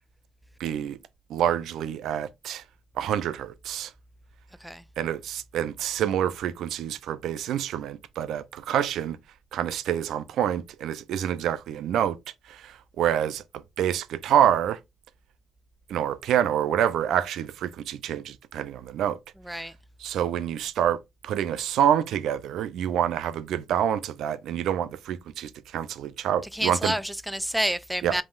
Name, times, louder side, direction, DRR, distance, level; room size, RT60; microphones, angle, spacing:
voice 1, 0.6-1.0 1.3-2.6 3.0-3.9 5.0-9.2 9.5-12.2 12.5-13.4 13.8-14.8 15.9-19.2 20.0-21.0 21.2-27.0 28.0-28.2, right 10 dB, 80° right, 0.4 m, -27 dB
voice 2, 19.4-19.7 26.5-28.2, equal, 5° right, 0.3 m, -29 dB
5.2 x 3.6 x 2.4 m
cardioid pair, 90°, 0 cm